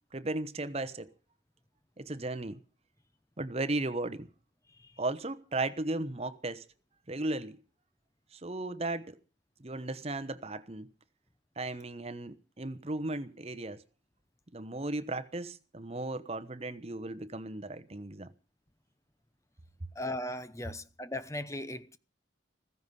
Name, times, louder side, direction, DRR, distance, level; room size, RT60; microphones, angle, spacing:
voice 1, 0.1-1.1 2.0-2.6 3.4-4.3 5.0-6.6 7.1-7.6 8.3-9.2 9.6-10.9 11.6-13.8 14.5-18.3 19.8-19.9, right 2 dB, 30° right, 1.0 m, -36 dB
voice 2, 20.0-22.0, left 1 dB, 15° left, 0.8 m, -37 dB
15.5 x 15.5 x 5.4 m
head